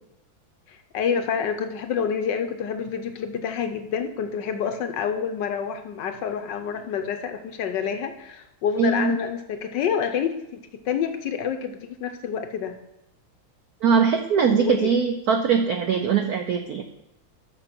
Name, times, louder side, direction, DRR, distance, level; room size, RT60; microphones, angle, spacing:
voice 1, 0.7-12.7 14.5-14.9, left 7 dB, 70° left, 8 dB, 1.2 m, -28 dB
voice 2, 8.8-9.2 13.8-16.8, right 6 dB, 75° right, 6 dB, 0.8 m, -21 dB
6.7 x 6.3 x 5.9 m, 0.90 s
omnidirectional pair, 2.3 m